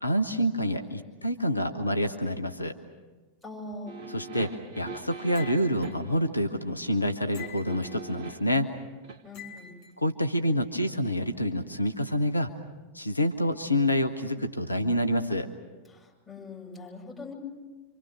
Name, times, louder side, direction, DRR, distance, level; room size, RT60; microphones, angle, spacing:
voice 1, 0.0-2.8 4.1-8.7 10.0-12.5 12.9-15.5, equal, 85° left, 7 dB, 1.1 m, -27 dB
voice 2, 3.4-4.0 9.2-9.8 15.9-17.3, left 2 dB, 5° left, -3 dB, 7.4 m, -42 dB
sound 1, 3.9-6.2 7.4-8.5 9.0-9.2, right 4 dB, 50° right, 1.5 m, -41 dB
sound 2, 5.3-5.9 7.3-8.0 9.3-9.9, left 8 dB, 45° left, 3.1 m, -46 dB
27.5 x 25.5 x 6.3 m, 1.3 s
figure-of-eight pair, 90°, 0 cm